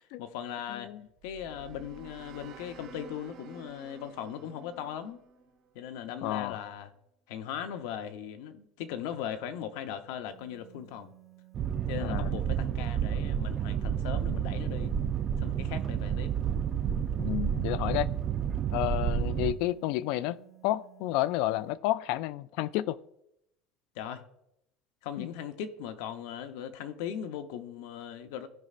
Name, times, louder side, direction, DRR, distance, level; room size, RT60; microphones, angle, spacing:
voice 1, 0.2-0.9 1.2-5.2 5.7-6.9 7.3-11.1 11.9-14.9 15.4-16.3 23.9-24.2 25.0-28.5, left 9 dB, 75° left, 0.8 m, -39 dB
voice 2, 0.7-1.0 6.2-6.6 11.9-12.3 17.2-18.1 18.7-20.4 20.6-23.0 25.2-25.3, left 15 dB, 60° left, 0.3 m, -30 dB
sound 1, 0.9-6.2, right 4 dB, 50° right, 1.8 m, -51 dB
sound 2, 10.3-21.7, right 19 dB, 5° right, 0.8 m, -56 dB
Boat Water vehicle, 11.5-19.5, right 8 dB, 30° right, 0.4 m, -30 dB
15.5 x 5.4 x 2.5 m
cardioid pair, 175°, 0 cm